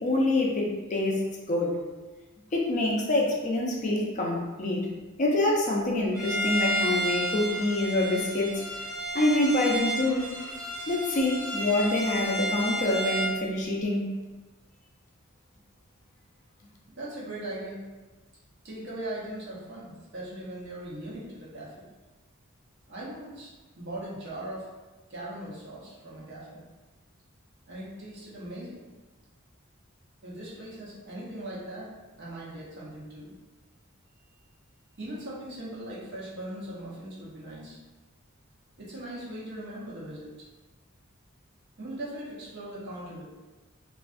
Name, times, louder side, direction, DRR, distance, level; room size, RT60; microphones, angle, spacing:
voice 1, 0.0-1.8 2.5-4.9 5.2-8.6 9.1-10.3 10.9-14.1, left 2 dB, 35° left, -2 dB, 0.4 m, -26 dB
Bowed string instrument, 6.1-13.4, right 1 dB, 20° right, 1.0 m, -31 dB
voice 2, 16.9-17.8 18.6-21.8 22.9-24.7 25.1-26.6 27.7-28.8 30.2-31.9 32.2-33.3 35.0-37.8 38.8-40.3 41.8-43.2, right 1 dB, 55° right, -7 dB, 0.7 m, -39 dB
2.4 x 2.2 x 2.4 m, 1.2 s
head